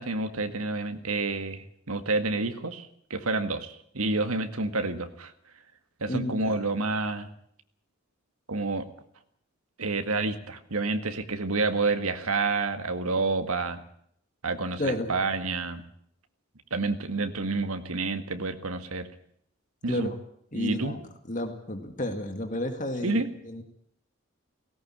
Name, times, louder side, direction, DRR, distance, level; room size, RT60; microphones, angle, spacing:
voice 1, 0.0-5.3 6.0-7.3 8.5-8.9 9.8-13.8 14.4-15.8 16.7-19.1 19.8-20.1 20.5-20.9 23.0-23.3, right 3 dB, 90° right, 9 dB, 1.9 m, -29 dB
voice 2, 6.1-6.6 14.8-15.1 19.9-20.1 20.5-23.6, left 1 dB, 35° left, 6 dB, 2.2 m, -32 dB
17.5 x 17.5 x 8.8 m, 0.67 s
head